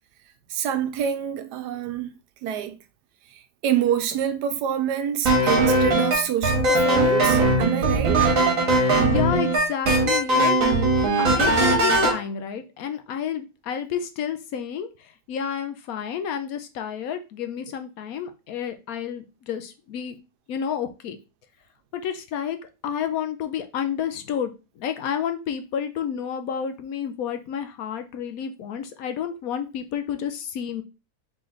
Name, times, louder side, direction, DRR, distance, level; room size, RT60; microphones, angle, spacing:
voice 1, 0.5-2.1 2.4-2.8 3.3-8.3, right 9 dB, 85° right, 1.2 m, -27 dB
sound 1, 5.3-12.2, right 2 dB, 55° right, 1.5 m, -20 dB
voice 2, 9.0-10.5 11.2-14.9 15.3-20.2 20.5-21.2 21.9-30.8, left 8 dB, 70° left, 0.9 m, -30 dB
3.8 x 3.2 x 3.8 m
omnidirectional pair, 1.7 m